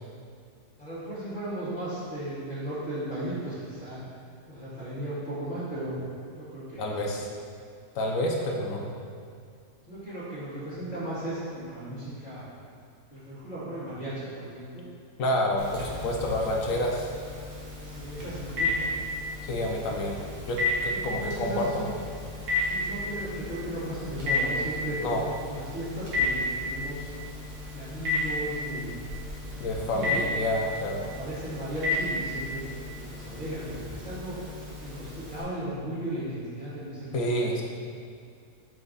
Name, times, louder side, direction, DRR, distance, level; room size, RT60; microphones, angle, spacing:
voice 1, 0.8-4.0 4.5-6.0 6.3-7.2 9.9-12.5 13.1-14.8 17.8-18.9 20.9-21.9 22.6-25.0 25.4-27.1 27.7-29.0 29.4-30.2 31.0-34.4 34.8-37.6, right 1 dB, 30° left, -12 dB, 1.8 m, -36 dB
voice 2, 6.8-7.3 7.9-8.9 15.2-17.1 19.5-20.2 20.5-21.9 25.0-25.2 29.6-31.0 37.1-37.6, left 1 dB, 65° left, 0 dB, 1.1 m, -28 dB
Telephone, 15.6-35.4, left 2 dB, 85° right, 1.9 m, -33 dB
5.6 x 5.0 x 4.0 m, 2.3 s
omnidirectional pair, 1.6 m